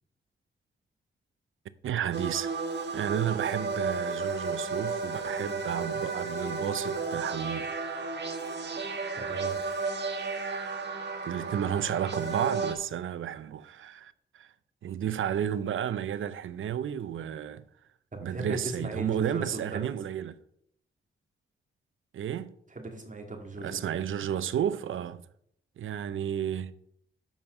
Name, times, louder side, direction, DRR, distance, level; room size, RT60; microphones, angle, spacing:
voice 1, 1.8-2.5 2.9-7.7 11.2-14.5 14.8-17.6 18.2-20.4 22.1-22.5 23.6-25.2 25.8-26.7, right 9 dB, 70° right, 0.6 m, -32 dB
sound 1, 2.1-12.7, right 4 dB, 55° right, 1.6 m, -33 dB
voice 2, 9.2-9.6 18.1-19.9 22.7-23.8, right 2 dB, 35° right, 2.3 m, -37 dB
7.2 x 5.4 x 6.5 m
cardioid pair, 55°, 21 cm